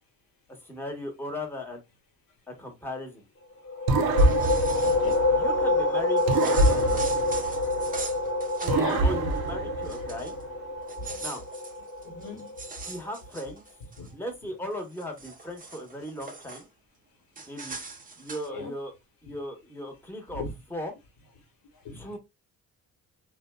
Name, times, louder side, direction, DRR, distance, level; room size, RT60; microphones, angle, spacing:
voice 1, 0.6-1.8 2.5-3.2 5.3-7.0 9.0-10.3 11.2-11.4 12.8-13.6 14.1-16.7 17.5-17.8 18.2-18.9 19.2-20.4 20.7-20.9 21.9-22.2, equal, 5° left, 1.0 m, -37 dB
sound 1, 3.7-13.1, left 2 dB, 40° left, 0.7 m, -27 dB
sound 2, 3.9-5.8 6.3-8.2 8.7-10.4, right 2 dB, 65° right, 0.6 m, -26 dB
sound 3, 4.2-5.2 6.2-9.0 9.3-9.5 9.8-10.4 10.8-14.1 14.6-16.7 17.4-18.5, right 4 dB, 20° right, 0.6 m, -42 dB
voice 2, 4.8-5.2 8.6-9.0 11.0-11.1 12.0-12.5 14.0-14.1 18.5-18.7 20.3-20.5 21.8-22.0, left 4 dB, 65° left, 1.2 m, -35 dB
2.5 x 2.2 x 2.2 m
supercardioid pair, 55°, 38 cm